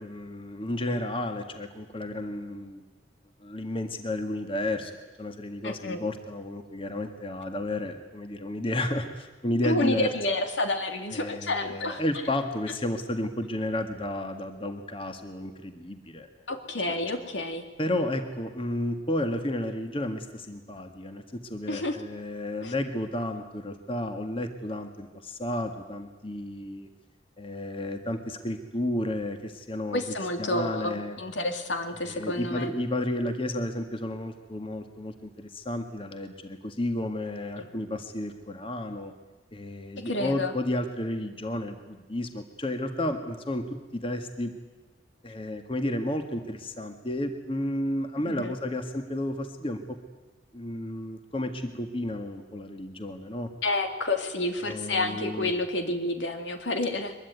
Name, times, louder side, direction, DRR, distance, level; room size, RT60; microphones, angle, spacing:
voice 1, 0.0-2.9 3.4-4.9 5.2-10.1 11.1-16.3 17.8-26.9 27.4-30.0 30.4-31.2 32.1-39.1 39.5-44.5 45.2-50.0 50.5-53.5 54.6-55.5, left 1 dB, 30° left, 6 dB, 1.8 m, -32 dB
voice 2, 5.6-6.0 9.6-12.0 16.5-17.6 21.7-22.0 22.6-22.7 29.9-32.7 37.6-37.7 40.0-40.5 48.3-48.6 53.6-57.1, left 2 dB, 80° left, 6 dB, 2.6 m, -29 dB
23.5 x 22.0 x 9.5 m, 1.2 s
head